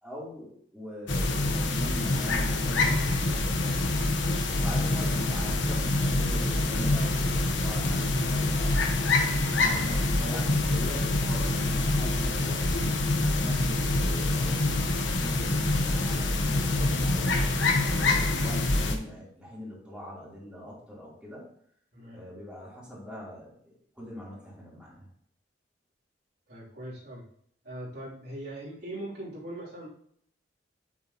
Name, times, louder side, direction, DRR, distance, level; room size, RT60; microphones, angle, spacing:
voice 1, 0.0-3.9 4.5-8.8 9.5-12.8 13.2-21.5 22.1-25.1, equal, 5° right, -7 dB, 3.3 m, -42 dB
sound 1, 1.1-19.0, left 2 dB, 90° left, 1.1 m, -26 dB
voice 2, 26.5-27.2 27.6-29.9, right 1 dB, 60° right, -6 dB, 3.2 m, -40 dB
8.4 x 7.4 x 3.0 m, 0.64 s
head